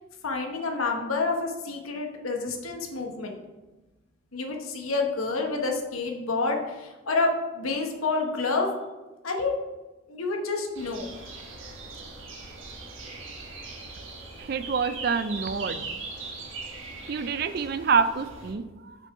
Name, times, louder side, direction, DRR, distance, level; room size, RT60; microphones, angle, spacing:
voice 1, 0.2-3.4 4.3-8.7 9.2-9.5 10.1-11.1, left 3 dB, 85° left, 2 dB, 1.1 m, -28 dB
sound 1, 10.7-18.5, right 3 dB, 70° right, 1.3 m, -40 dB
voice 2, 14.4-15.9 17.1-19.0, right 5 dB, 45° right, 12 dB, 0.4 m, -27 dB
6.2 x 5.4 x 4.8 m, 1.1 s
head